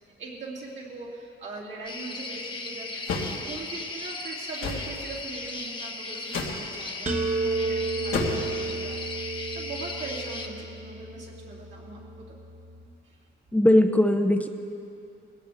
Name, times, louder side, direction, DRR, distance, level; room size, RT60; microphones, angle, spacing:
voice 1, 0.2-12.4 13.0-13.2, right 3 dB, 65° right, -5 dB, 2.7 m, -41 dB
sound 1, 1.9-10.5, left 3 dB, 25° left, 1.2 m, -37 dB
sound 2, 3.1-3.4 4.6-4.9 6.3-6.6 8.1-8.5, left 4 dB, 90° left, 1.9 m, -29 dB
sound 3, 7.1-12.9, right 3 dB, 35° right, 1.2 m, -32 dB
voice 2, 13.5-14.5, left 1 dB, 5° left, 5 dB, 0.7 m, -19 dB
19.5 x 16.5 x 3.5 m, 2.5 s
cardioid pair, 125°, 21 cm